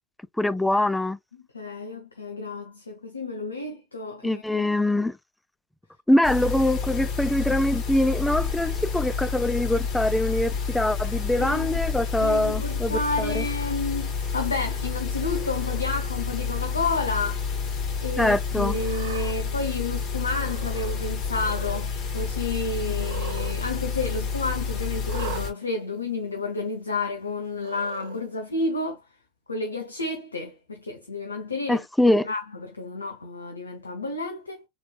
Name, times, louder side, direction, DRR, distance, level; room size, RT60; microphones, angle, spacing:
voice 1, 0.4-1.2 4.2-5.2 6.1-13.4 18.2-18.8 31.7-32.3, left 1 dB, 5° left, 0.4 m, -23 dB
voice 2, 1.5-4.6 11.4-11.8 12.2-17.4 18.0-29.1 29.5-34.6, left 3 dB, 85° left, 0.7 m, -31 dB
sound 1, 6.2-25.5, left 5 dB, 45° left, 2.7 m, -29 dB
Cat, 15.3-15.9 16.6-17.1 17.4-17.5 18.6-19.4 20.3-21.0 21.3-21.8 22.9-23.6 23.8-23.9 25.0-25.5 26.4-26.5 27.6-28.2, right 8 dB, 65° right, 0.8 m, -40 dB
4.3 x 3.2 x 2.3 m
figure-of-eight pair, 80°, 0 cm